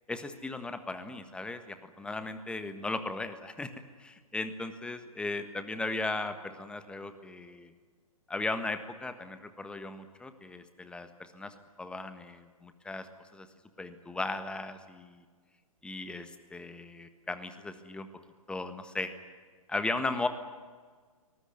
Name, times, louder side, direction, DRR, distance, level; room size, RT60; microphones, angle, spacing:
voice 1, 0.1-3.7 4.0-7.7 8.3-13.1 13.3-13.5 13.8-15.2 15.8-18.1 18.5-19.1 19.7-20.3, left 3 dB, 5° left, 9 dB, 1.5 m, -37 dB
23.0 x 19.5 x 9.6 m, 1.5 s
figure-of-eight pair, 120°, 18 cm